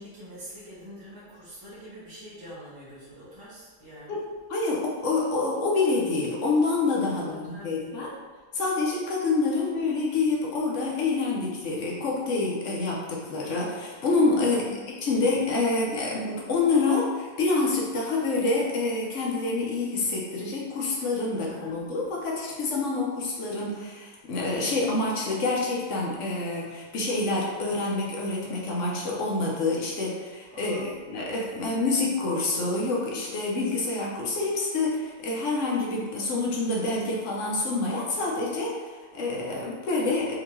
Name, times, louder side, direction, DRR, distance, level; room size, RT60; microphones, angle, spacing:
voice 1, 0.0-4.2 7.1-8.0 14.4-14.9 21.3-21.8 30.5-31.0, equal, 20° right, -10 dB, 0.9 m, -45 dB
voice 2, 4.5-8.1 8.5-14.6 15.0-40.3, left 3 dB, 70° left, -3 dB, 1.0 m, -27 dB
3.6 x 2.8 x 2.9 m, 1.4 s
omnidirectional pair, 1.3 m